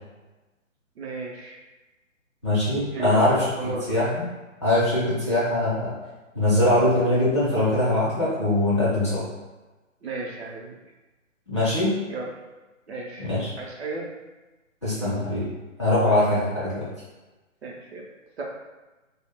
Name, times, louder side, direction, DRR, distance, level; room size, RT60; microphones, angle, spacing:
voice 1, 1.0-1.6 2.9-3.9 10.0-10.7 12.1-12.3 12.9-13.3 13.6-14.1 17.6-18.0 18.4-18.5, right 3 dB, 55° right, -2 dB, 0.6 m, -34 dB
voice 2, 2.4-4.2 4.6-5.9 6.3-9.2 11.5-12.0 13.2-13.5 14.8-15.5 15.8-16.9, left 1 dB, 25° left, -11 dB, 0.5 m, -22 dB
2.2 x 2.1 x 3.4 m, 1.1 s
hypercardioid pair, 160°, 40 cm